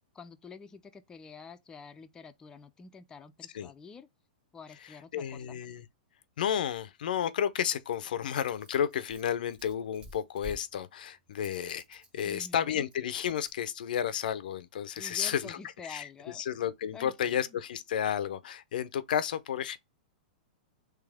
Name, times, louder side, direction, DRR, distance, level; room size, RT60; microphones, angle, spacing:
voice 1, 0.1-4.1 4.5-5.5 12.2-12.9 15.0-16.4 16.9-17.4, left 5 dB, 15° left, 0.4 m, -48 dB
voice 2, 4.8-5.9 6.4-19.8, left 9 dB, 75° left, 0.5 m, -32 dB
Rattle, 7.5-13.6, left 1 dB, 20° right, 0.8 m, -53 dB
3.3 x 3.3 x 3.4 m
hypercardioid pair, 130°, 5 cm